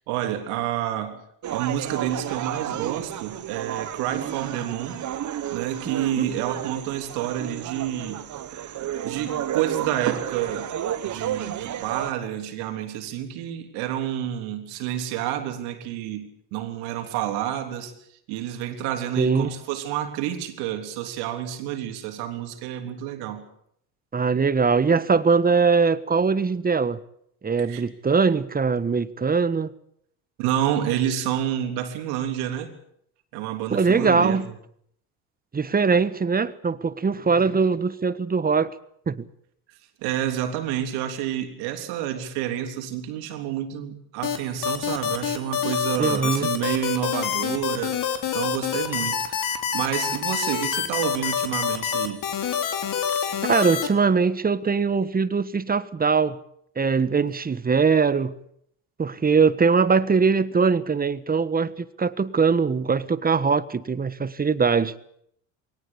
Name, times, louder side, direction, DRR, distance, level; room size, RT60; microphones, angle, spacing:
voice 1, 0.1-1.2 1.5-5.0 5.5-8.3 9.0-10.7 11.0-17.9 18.3-23.5 27.6-27.8 30.4-32.7 33.3-34.5 40.0-52.2, right 11 dB, 80° right, 3.6 m, -29 dB
sound 1, 1.4-12.1, right 10 dB, 50° right, 1.6 m, -32 dB
voice 2, 19.2-19.5 24.1-27.0 27.4-29.7 33.7-34.5 35.5-38.7 39.1-39.2 46.0-46.5 53.4-56.4 56.8-58.3 59.0-64.9, right 5 dB, 25° right, 1.4 m, -21 dB
sound 2, 44.2-53.9, left 8 dB, 55° left, 3.7 m, -26 dB
22.0 x 18.5 x 8.7 m
supercardioid pair, 85°, 38 cm